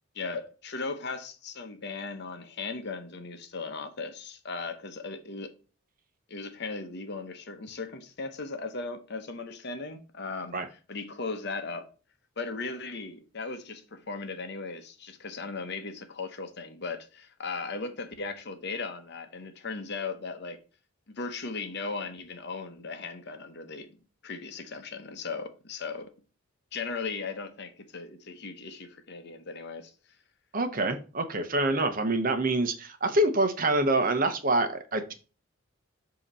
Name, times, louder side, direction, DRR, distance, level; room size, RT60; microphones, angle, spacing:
voice 1, 0.1-5.6 6.3-10.6 10.9-11.9 12.4-20.6 21.1-23.9 24.2-26.1 26.7-29.9, left 4 dB, 50° left, 0.9 m, -37 dB
voice 2, 30.5-35.1, right 2 dB, 40° right, 0.9 m, -26 dB
7.6 x 3.0 x 5.4 m
head